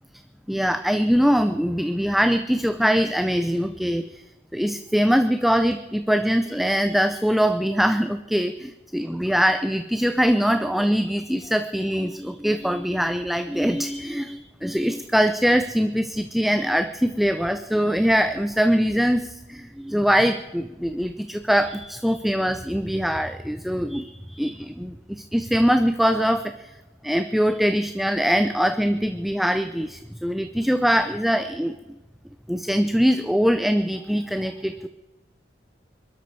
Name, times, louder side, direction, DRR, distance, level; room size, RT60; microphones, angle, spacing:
voice 1, 0.5-4.2 4.5-26.7 27.0-31.7 32.5-34.9, equal, ahead, 9 dB, 0.6 m, -22 dB
23.5 x 12.5 x 4.7 m, 1.1 s
head